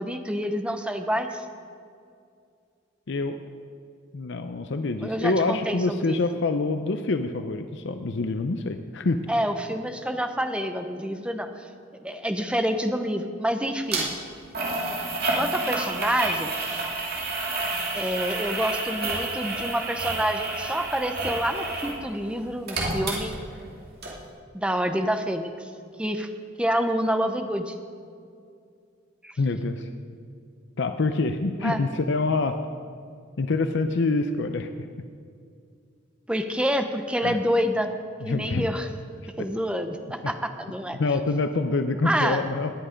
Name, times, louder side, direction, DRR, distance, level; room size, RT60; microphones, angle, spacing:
voice 1, 0.0-1.4 5.0-6.2 9.3-11.7 12.0-14.1 15.3-16.5 17.9-23.3 24.5-25.7 26.0-26.3 26.6-27.7 29.2-29.4 31.6-31.8 36.3-37.9 38.3-38.9 39.4-41.0 42.0-42.4, equal, 5° right, 6 dB, 0.8 m, -27 dB
voice 2, 4.1-9.2 29.4-29.9 30.8-32.6 33.4-34.7 37.2-37.4 38.2-38.7 39.4-39.5 40.9-42.7, left 3 dB, 60° left, 8 dB, 0.6 m, -26 dB
sound 1, 13.9-14.0 14.5-22.0 22.3-23.7 24.0-24.1, right 2 dB, 50° right, 2.6 m, -29 dB
18.0 x 10.0 x 5.1 m, 2.3 s
head